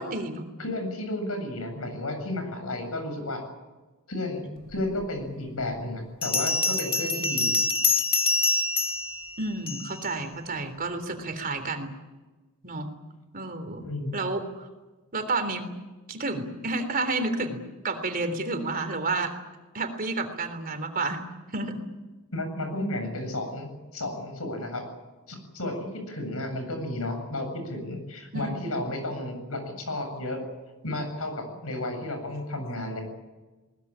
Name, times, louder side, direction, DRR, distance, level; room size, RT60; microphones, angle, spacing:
voice 1, 0.0-0.4 4.5-4.9 9.4-11.9 12.6-12.9 13.3-13.8 14.1-14.7 15.1-15.7 16.1-19.3 19.7-21.2 21.5-21.8 28.3-28.7, right 3 dB, 40° right, 7 dB, 3.5 m, -30 dB
voice 2, 0.6-3.4 4.1-7.6 13.8-14.2 22.3-24.9 25.3-30.4 30.8-33.0, left 1 dB, 75° left, 6 dB, 7.7 m, -32 dB
Bell, 5.0-5.1 6.2-10.1, left 3 dB, 25° left, 2.2 m, -26 dB
21.5 x 20.0 x 10.0 m, 1.2 s
head